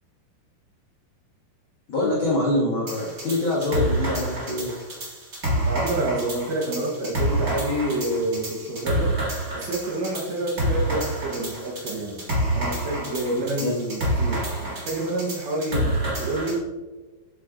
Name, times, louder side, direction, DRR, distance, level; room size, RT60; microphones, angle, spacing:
voice 1, 1.9-4.7 13.6-13.7, left 1 dB, 70° left, -5 dB, 1.2 m, -24 dB
sound 1, 2.9-16.6, right 1 dB, 50° right, 1.0 m, -28 dB
voice 2, 5.6-9.1 9.5-12.2 12.5-16.6, right 1 dB, 65° right, -2 dB, 2.3 m, -28 dB
8.1 x 7.6 x 2.5 m, 1.3 s
omnidirectional pair, 4.6 m